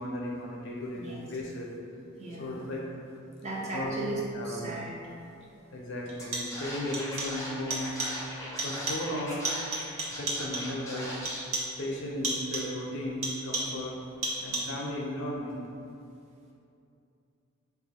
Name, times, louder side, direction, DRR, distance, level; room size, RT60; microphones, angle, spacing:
voice 1, 0.0-1.0 1.3-1.7 2.4-2.8 3.7-4.1 4.3-4.7 5.7-7.9 8.6-9.4 10.1-11.1 11.8-13.9 14.4-15.6, left 1 dB, 60° left, -3 dB, 0.5 m, -35 dB
voice 2, 2.2-2.6 3.4-4.9, right 2 dB, 30° right, -4 dB, 0.5 m, -36 dB
sound 1, 5.0-5.1 6.1-6.7 6.9-7.5 7.7-8.3 8.6-9.2 9.4-10.8 11.3-11.8 12.2-12.8 13.2-13.9 14.2-14.9, right 2 dB, 85° right, 0.7 m, -34 dB
Scratching (performance technique), 6.2-6.3 6.5-9.8 10.1-11.4, left 1 dB, 15° left, 0.5 m, -39 dB
2.6 x 2.3 x 4.1 m, 2.6 s
head